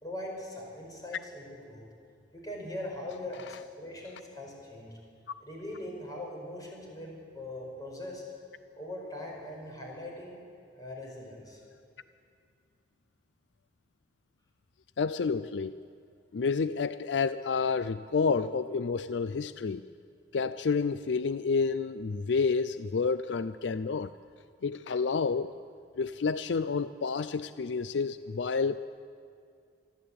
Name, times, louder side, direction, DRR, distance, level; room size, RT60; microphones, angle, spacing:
voice 1, 0.0-1.8 2.3-5.0 5.4-8.2 8.8-10.4 10.8-11.6, left 1 dB, 20° left, -1 dB, 5.3 m, -41 dB
voice 2, 15.0-15.7 16.3-19.9 20.3-24.1 24.6-25.6 26.0-28.8, left 5 dB, 70° left, 14 dB, 0.4 m, -29 dB
23.5 x 13.5 x 8.6 m, 2.3 s
head